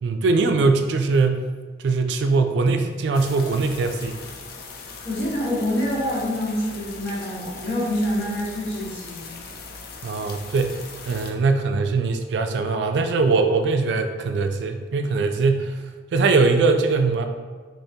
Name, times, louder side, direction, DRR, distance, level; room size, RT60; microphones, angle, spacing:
voice 1, 0.0-1.4 1.8-4.2 10.0-10.8 11.1-15.7 16.1-17.2, right 4 dB, 70° right, 7 dB, 0.3 m, -21 dB
sound 1, 3.1-11.3, left 4 dB, 55° left, 0.4 m, -40 dB
voice 2, 5.0-9.3, left 1 dB, 80° left, -7 dB, 1.3 m, -26 dB
3.4 x 2.9 x 2.7 m, 1.5 s
head